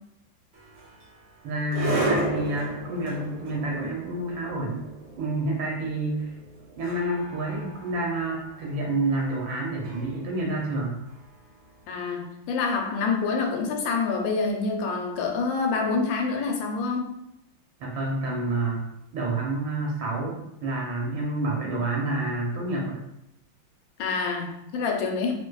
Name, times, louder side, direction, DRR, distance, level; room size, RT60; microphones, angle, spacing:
sound 1, 0.5-11.7, right 2 dB, 55° right, 0.5 m, -35 dB
voice 1, 1.4-4.9 5.2-6.3 6.8-11.0 17.8-18.9 19.1-23.0, right 2 dB, 80° right, -2 dB, 1.5 m, -28 dB
voice 2, 11.9-17.1 24.0-25.3, left 4 dB, 85° left, 2 dB, 1.4 m, -27 dB
3.9 x 2.5 x 2.3 m, 0.82 s
omnidirectional pair, 2.1 m